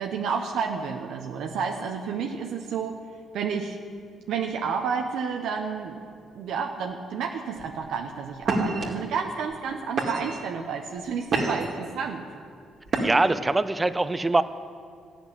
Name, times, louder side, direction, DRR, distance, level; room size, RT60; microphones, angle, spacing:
voice 1, 0.0-3.0 3.3-3.8 4.3-12.2, right 6 dB, 75° right, 2 dB, 0.8 m, -30 dB
sound 1, 7.6-7.9 8.4-8.8 9.5-9.6 10.0-10.5 11.0-11.8 12.9-13.4, right 3 dB, 50° right, 2.1 m, -27 dB
voice 2, 13.0-14.4, right 2 dB, 15° right, 13 dB, 0.5 m, -23 dB
13.5 x 6.3 x 9.9 m, 2.2 s
cardioid pair, 100°, 0 cm